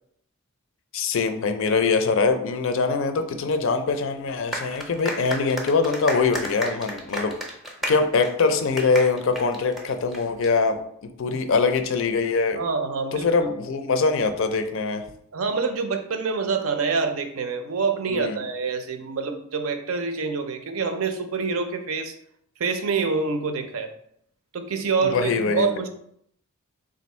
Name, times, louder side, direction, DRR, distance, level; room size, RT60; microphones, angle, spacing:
voice 1, 0.9-7.3 7.9-10.8 11.2-12.6 13.1-15.0 18.1-18.4 25.0-25.8, left 4 dB, 60° left, 8 dB, 0.4 m, -23 dB
sound 1, 4.5-10.5, equal, ahead, 0.5 m, -33 dB
voice 2, 12.6-13.5 15.3-22.1 22.6-23.9 24.5-25.9, right 4 dB, 70° right, 7 dB, 0.5 m, -26 dB
3.6 x 2.6 x 4.2 m, 0.70 s
head